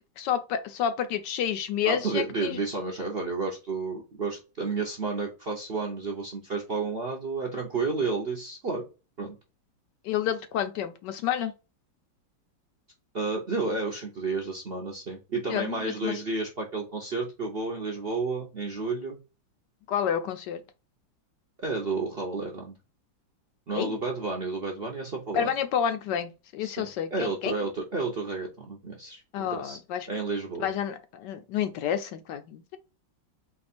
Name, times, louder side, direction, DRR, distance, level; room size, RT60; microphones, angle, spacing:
voice 1, 0.2-2.6 10.0-11.5 15.5-16.2 19.9-20.6 23.7-24.0 25.3-27.6 29.3-30.1 30.6-32.8, left 9 dB, 75° left, 1.1 m, -29 dB
voice 2, 1.9-8.8 9.2-9.4 13.1-19.2 21.6-22.7 23.7-25.5 26.6-29.8 30.1-30.7, right 3 dB, 50° right, 0.7 m, -31 dB
4.3 x 2.4 x 4.1 m
omnidirectional pair, 2.1 m